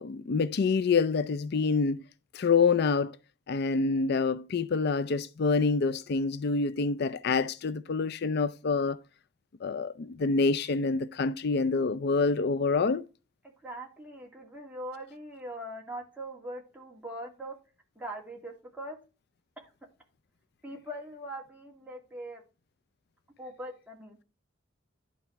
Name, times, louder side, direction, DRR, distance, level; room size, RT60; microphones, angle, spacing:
voice 1, 0.0-2.0 2.3-3.1 3.5-9.0 9.6-13.0, left 4 dB, 55° left, 0.4 m, -27 dB
voice 2, 13.6-17.5 18.0-19.0 19.6-19.7 20.6-22.4 23.4-24.2, right 1 dB, 10° right, 2.4 m, -41 dB
11.0 x 4.2 x 5.8 m
head